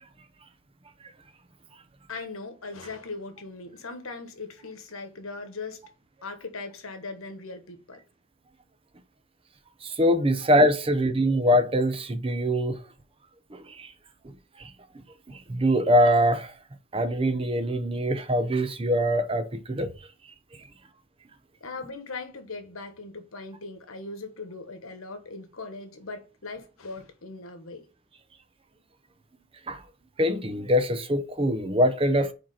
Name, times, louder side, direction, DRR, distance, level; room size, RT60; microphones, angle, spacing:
voice 1, 2.1-5.8 6.2-8.0 10.4-10.5 21.6-27.8, left 3 dB, 85° left, 1.3 m, -39 dB
voice 2, 9.8-12.8 13.5-13.9 14.6-14.7 15.3-16.5 16.9-19.9 29.7-29.8 30.2-32.3, equal, 25° right, 0.6 m, -23 dB
4.9 x 4.6 x 5.7 m
head